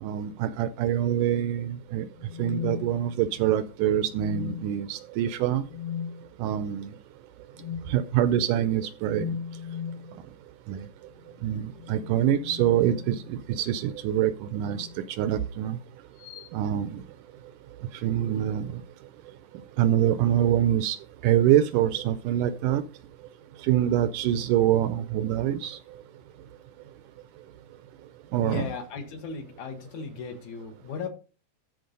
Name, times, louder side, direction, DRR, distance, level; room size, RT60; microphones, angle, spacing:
voice 1, 0.0-2.1 2.4-5.6 6.4-6.9 7.9-9.4 10.7-10.9 11.4-15.8 16.5-17.0 18.0-18.8 19.8-21.0 21.2-22.8 23.6-25.8 28.3-28.7, right 11 dB, 80° right, 1.9 m, -25 dB
sound 1, 2.2-3.5 4.1-4.9 5.7-6.2 7.6-8.0 9.1-10.1 11.6-13.5 14.5-15.0 16.2-16.5, left 8 dB, 85° left, 2.6 m, -37 dB
voice 2, 28.4-31.1, left 5 dB, 65° left, 2.4 m, -36 dB
13.0 x 4.7 x 5.3 m
omnidirectional pair, 4.0 m